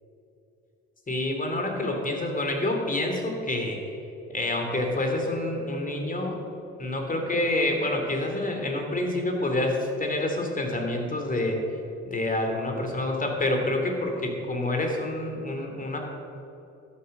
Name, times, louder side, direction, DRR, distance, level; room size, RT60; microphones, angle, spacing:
voice 1, 1.1-3.8 4.3-6.4 6.8-11.6 12.0-16.0, left 1 dB, 25° left, 2 dB, 2.8 m, -27 dB
13.0 x 9.4 x 6.6 m, 3.0 s
cardioid pair, 90°, 30 cm